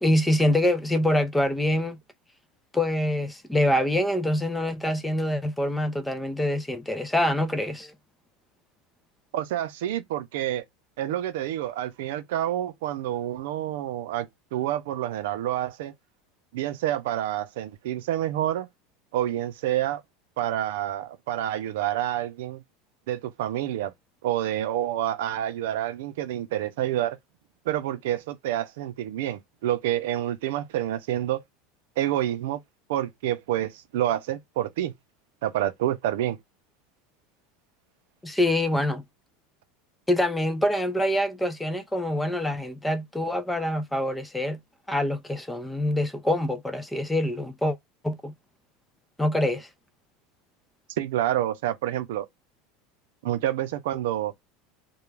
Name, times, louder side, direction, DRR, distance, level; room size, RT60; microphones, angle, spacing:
voice 1, 0.0-2.0 2.7-7.9 38.2-39.0 40.1-44.6 44.9-47.8 48.0-48.3 49.2-49.7, left 1 dB, 5° left, 0.3 m, -25 dB
voice 2, 9.3-10.6 11.0-15.9 16.5-18.7 19.1-20.0 20.4-22.6 23.1-23.9 24.2-27.2 27.7-31.4 32.0-32.6 32.9-34.9 35.4-36.4 51.0-52.3 53.2-54.3, right 12 dB, 80° right, 0.4 m, -28 dB
2.3 x 2.2 x 3.1 m
supercardioid pair, 160°, 0 cm